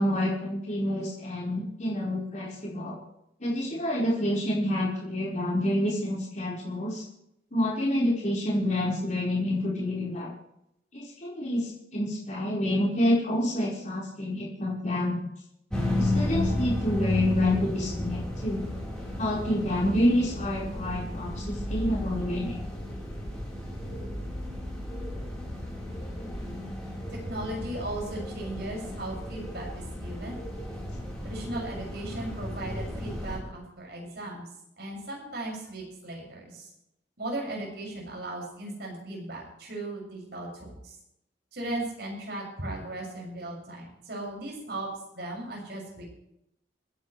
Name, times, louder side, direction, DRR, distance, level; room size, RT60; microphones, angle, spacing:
voice 1, 0.0-3.0 3.4-7.0 7.5-10.3 10.9-15.2 16.0-18.7 19.2-22.6, left 1 dB, 40° left, -6 dB, 4.9 m, -28 dB
sound 1, 15.7-33.4, left 1 dB, 5° left, 4.3 m, -33 dB
voice 2, 27.3-29.7 30.0-30.4 31.2-34.5 34.8-36.7 37.2-40.9 41.5-44.9 45.1-46.1, right 1 dB, 60° right, -2 dB, 6.8 m, -37 dB
29.0 x 10.0 x 3.4 m, 0.79 s
head